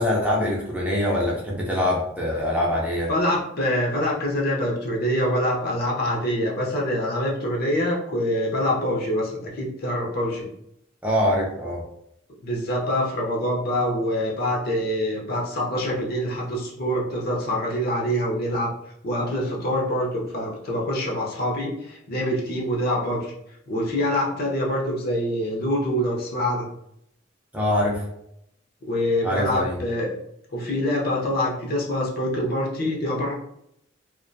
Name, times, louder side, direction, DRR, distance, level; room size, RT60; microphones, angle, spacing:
voice 1, 0.0-3.1 11.0-11.9 27.5-28.1 29.2-29.8, left 1 dB, 5° right, -4 dB, 0.4 m, -24 dB
voice 2, 3.1-10.5 12.4-18.7 19.0-23.3 23.7-26.7 28.8-30.2 30.5-33.3, equal, 50° left, -2 dB, 0.6 m, -25 dB
2.3 x 2.2 x 2.5 m, 0.77 s
head